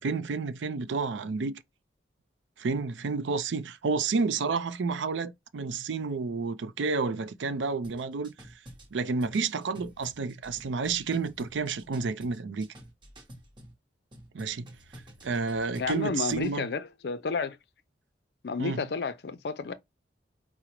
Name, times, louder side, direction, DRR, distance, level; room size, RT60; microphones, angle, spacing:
voice 1, 0.0-1.6 2.6-8.3 8.9-12.7 14.3-14.7 15.2-16.7 18.6-18.8, right 4 dB, 85° right, 0.5 m, -30 dB
sound 1, 7.8-13.7 14.1-16.6, equal, 25° right, 0.8 m, -49 dB
voice 2, 15.8-17.6 18.4-19.7, left 4 dB, 60° left, 0.4 m, -31 dB
4.9 x 2.1 x 2.9 m
head